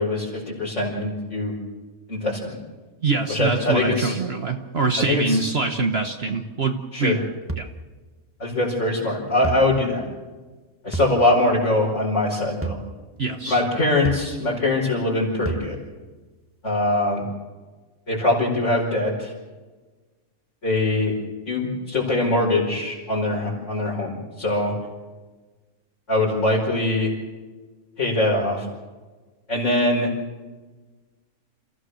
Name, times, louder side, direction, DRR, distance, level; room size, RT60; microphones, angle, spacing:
voice 1, 0.0-1.5 2.1-2.6 3.3-4.2 5.0-5.4 6.9-7.2 8.4-10.1 10.8-12.8 13.5-15.8 16.6-17.3 18.1-19.3 20.6-21.1 21.5-24.7 26.1-27.1 28.0-28.6 29.5-30.1, left 2 dB, 55° left, -6 dB, 5.5 m, -22 dB
voice 2, 3.0-7.3 7.5-7.7 13.2-13.6, right 4 dB, 45° right, 5 dB, 1.3 m, -24 dB
sound 1, 7.5-7.7 9.4-9.7 10.9-11.2 12.6-12.9 14.1-14.3 15.5-15.8, right 3 dB, 10° right, 1.4 m, -29 dB
28.0 x 16.0 x 6.4 m, 1.3 s
omnidirectional pair, 1.5 m